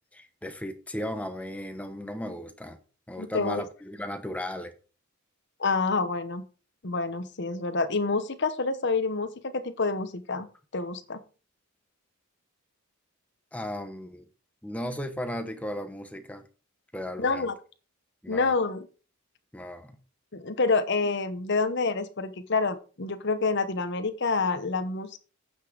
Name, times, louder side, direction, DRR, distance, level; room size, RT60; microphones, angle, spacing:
voice 1, 0.1-2.8 3.1-4.7 13.5-14.2 14.6-16.5 16.9-17.5 18.2-18.5 19.5-20.0, left 1 dB, 5° left, 1.0 m, -36 dB
voice 2, 3.2-3.6 5.6-6.4 6.8-10.5 10.7-11.2 17.2-17.5 18.3-18.9 20.3-25.2, left 3 dB, 55° left, 1.0 m, -27 dB
9.1 x 6.2 x 5.1 m
head